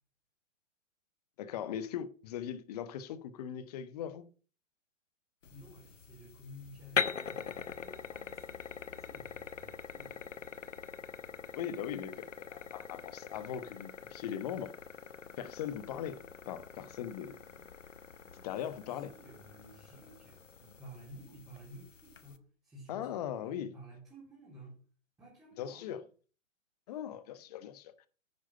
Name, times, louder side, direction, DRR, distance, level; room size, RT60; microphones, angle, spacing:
voice 1, 1.4-4.3 11.5-14.7 15.4-16.2 16.5-17.4 18.4-19.1 22.9-23.7 25.6-26.0 26.9-27.9, left 9 dB, 30° left, 1.1 m, -39 dB
sound 1, 5.4-22.4, left 6 dB, 70° left, 1.2 m, -43 dB
voice 2, 5.5-10.2 18.3-24.8 25.2-25.9 26.9-27.0, right 1 dB, 10° right, 3.7 m, -54 dB
11.0 x 8.7 x 5.5 m
figure-of-eight pair, 125°, 39 cm